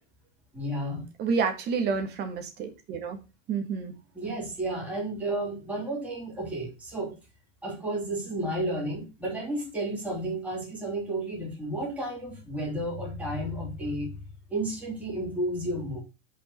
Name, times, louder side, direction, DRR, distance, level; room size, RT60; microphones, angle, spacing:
voice 1, 0.5-1.1 4.1-7.2 7.6-14.2 14.5-16.0, right 1 dB, 5° right, -6 dB, 3.2 m, -32 dB
voice 2, 1.2-3.2 3.5-3.9, right 5 dB, 25° right, 5 dB, 1.7 m, -29 dB
5.6 x 5.2 x 6.5 m, 0.29 s
supercardioid pair, 155°, 36 cm